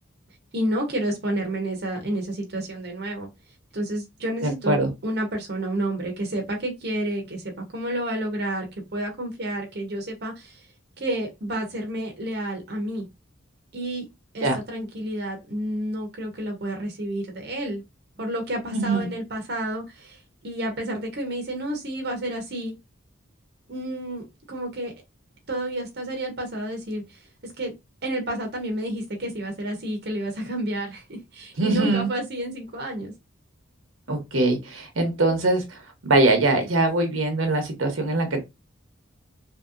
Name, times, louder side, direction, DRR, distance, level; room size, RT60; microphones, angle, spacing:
voice 1, 0.5-3.3 3.7-8.7 8.9-10.7 11.0-13.1 13.7-14.1 14.3-17.8 18.2-22.7 23.7-24.9 25.5-27.7 28.0-33.1, right 1 dB, 55° right, 0.8 m, -30 dB
voice 2, 4.4-4.9 14.4-14.6 18.7-19.1 31.6-32.1 34.1-38.4, right 2 dB, 85° right, 0.9 m, -22 dB
3.1 x 2.7 x 2.4 m
head